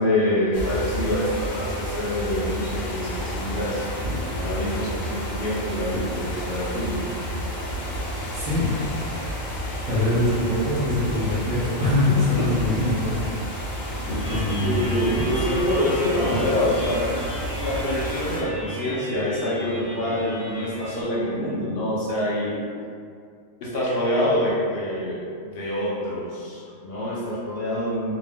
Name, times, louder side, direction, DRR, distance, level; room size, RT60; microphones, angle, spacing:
voice 1, 0.0-3.9 4.4-7.0 12.3-12.5 14.3-17.1 17.6-22.6 23.6-25.2 25.5-28.2, left 1 dB, 60° left, -6 dB, 0.7 m, -26 dB
sound 1, 0.5-18.4, equal, 85° left, 1.0 m, -30 dB
voice 2, 8.3-8.9 9.9-13.2 13.6-13.9 14.2-15.0, left 2 dB, 45° right, -7 dB, 0.5 m, -24 dB
sound 2, 14.2-21.0, right 1 dB, 45° left, 1.0 m, -35 dB
2.6 x 2.0 x 3.4 m, 2.2 s
omnidirectional pair, 1.4 m